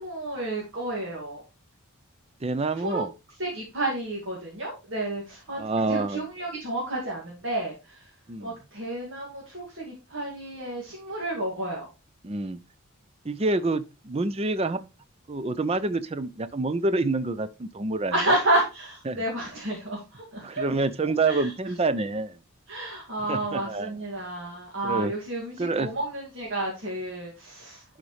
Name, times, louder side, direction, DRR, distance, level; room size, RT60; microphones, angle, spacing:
voice 1, 0.0-1.4 2.8-3.0 3.4-5.6 5.9-8.1 8.4-11.9 18.1-20.6 21.3-21.5 22.7-27.8, right 1 dB, 60° right, 2.3 m, -30 dB
voice 2, 2.4-3.1 5.6-6.2 8.3-8.5 12.2-12.6 13.2-14.9 15.3-18.3 19.1-19.2 20.4-22.4 23.3-23.9 24.8-25.1 25.6-25.9, right 3 dB, 30° right, 0.5 m, -27 dB
11.0 x 5.0 x 3.2 m
head